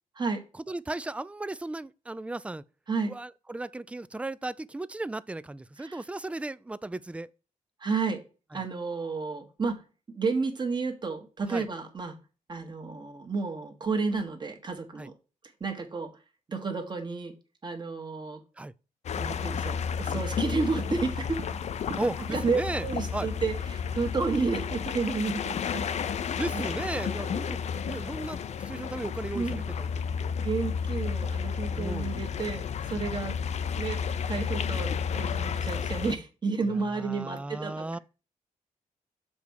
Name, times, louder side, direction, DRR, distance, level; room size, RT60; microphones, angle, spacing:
voice 1, 0.7-2.6 3.1-7.3 8.5-8.6 11.5-11.7 15.0-15.1 18.6-18.7 22.0-22.9 23.1-23.3 26.3-29.9 30.1-30.3 31.7-32.1 36.9-38.0, right 2 dB, 10° right, 0.3 m, -35 dB
voice 2, 7.8-8.2 8.5-9.8 10.1-12.1 12.5-15.1 15.6-16.1 16.5-17.3 17.6-18.4 19.2-21.4 22.3-26.2 26.5-26.7 29.3-29.6 30.4-33.4 33.8-34.0 34.3-38.0, right 4 dB, 35° right, 1.5 m, -31 dB
sound 1, 19.1-36.2, left 7 dB, 55° left, 0.5 m, -32 dB
sound 2, 20.8-23.4 23.7-23.8 24.0-25.1 25.3-25.5 25.9-26.1, right 5 dB, 55° right, 1.0 m, -46 dB
7.0 x 3.5 x 6.3 m
cardioid pair, 120°, 14 cm